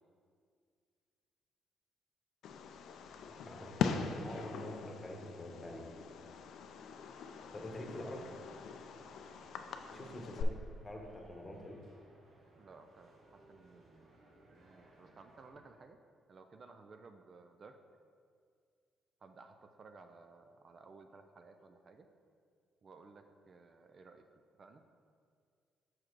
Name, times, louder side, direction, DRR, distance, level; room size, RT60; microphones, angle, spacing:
Fireworks, 2.4-10.4, left 6 dB, 75° left, 0.4 m, -42 dB
voice 1, 3.4-5.8 7.5-8.3 9.9-10.6 10.8-11.8, left 1 dB, 20° left, 1 dB, 1.0 m, -46 dB
sound 1, 7.2-15.5, right 1 dB, 70° right, 1.3 m, -64 dB
voice 2, 9.9-10.6 12.6-14.1 14.5-16.0 16.3-17.8 19.2-22.1 22.8-24.2 24.6-24.8, right 4 dB, 45° right, 6 dB, 0.4 m, -57 dB
6.1 x 4.8 x 4.6 m, 2.1 s
cardioid pair, 90°, 0 cm